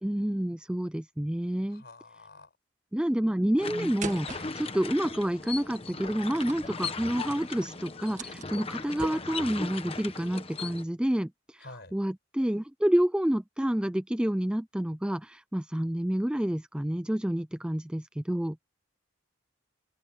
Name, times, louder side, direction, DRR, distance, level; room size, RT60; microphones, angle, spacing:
voice 1, 0.0-1.8 2.9-11.7 11.9-18.6, equal, 5° right, 0.3 m, -29 dB
voice 2, 1.7-2.5 11.6-11.9, left 2 dB, 50° left, 5.8 m, -48 dB
sound 1, 3.6-10.8, left 4 dB, 30° left, 1.1 m, -38 dB
sound 2, 4.0-9.7, right 3 dB, 35° right, 1.8 m, -44 dB
open air
head